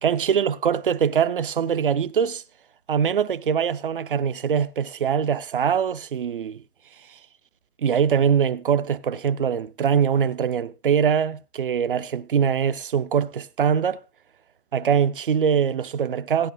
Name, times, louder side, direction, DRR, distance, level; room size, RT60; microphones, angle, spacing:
voice 1, 0.0-2.4 2.9-6.6 7.8-14.0 14.7-16.5, right 7 dB, 35° right, 0.6 m, -23 dB
16.0 x 10.5 x 2.6 m
hypercardioid pair, 145°, 45 cm